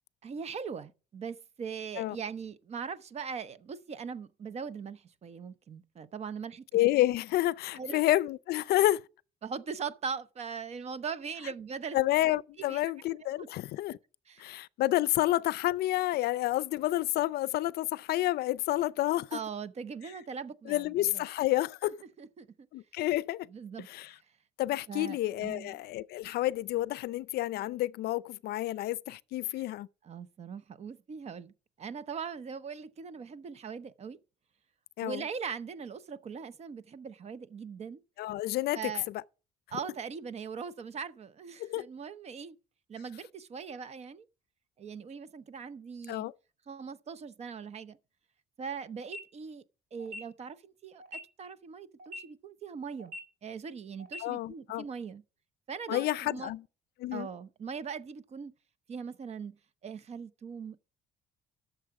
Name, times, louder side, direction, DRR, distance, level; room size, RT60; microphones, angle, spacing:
voice 1, 0.2-6.6 7.8-8.0 9.4-12.0 12.6-12.8 13.4-13.5 14.3-14.5 19.3-21.2 21.8-22.5 23.5-23.9 24.9-25.8 30.0-31.5 31.8-34.2 35.0-38.0 38.7-39.1 39.7-42.6 42.9-44.3 44.8-46.3 46.7-48.0 48.6-49.6 49.9-53.1 53.4-55.2 55.7-56.5 57.1-58.5 58.9-59.6 59.8-60.8, right 6 dB, 40° right, 0.7 m, -40 dB
voice 2, 6.7-9.0 11.9-14.0 14.4-19.4 20.7-22.0 22.7-23.5 23.9-24.1 24.6-29.9 35.0-35.2 38.2-39.2 41.6-41.8 46.1-46.3 54.2-54.9 55.9-56.6 57.0-57.3, left 16 dB, 70° left, 0.5 m, -29 dB
sound 1, 49.0-49.2 50.0-50.2 51.0-51.2 52.0-52.2 53.0-53.2 54.0-54.2, left 1 dB, 85° right, 2.6 m, -41 dB
11.5 x 6.9 x 4.8 m
cardioid pair, 110°, 17 cm